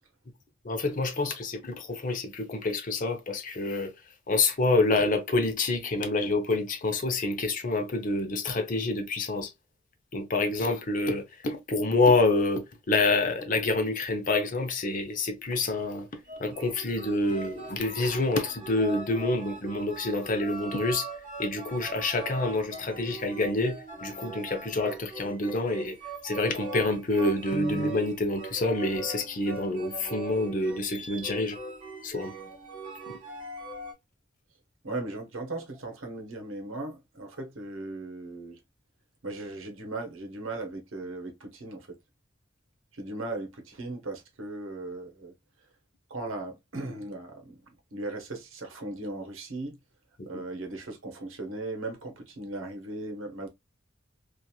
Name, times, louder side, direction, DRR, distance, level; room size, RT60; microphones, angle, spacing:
voice 1, 0.6-3.9 4.3-9.5 10.1-16.1 16.4-21.1 21.4-26.0 26.2-31.6 32.0-32.3 33.1-33.2 50.2-50.3, left 2 dB, 40° left, 0.6 m, -27 dB
sound 1, 16.2-33.9, right 2 dB, 40° right, 1.1 m, -41 dB
voice 2, 34.8-38.6 39.2-42.0 42.9-45.3 46.1-47.6 47.9-49.8 50.3-53.5, right 2 dB, 75° right, 0.9 m, -37 dB
2.9 x 2.4 x 2.2 m
head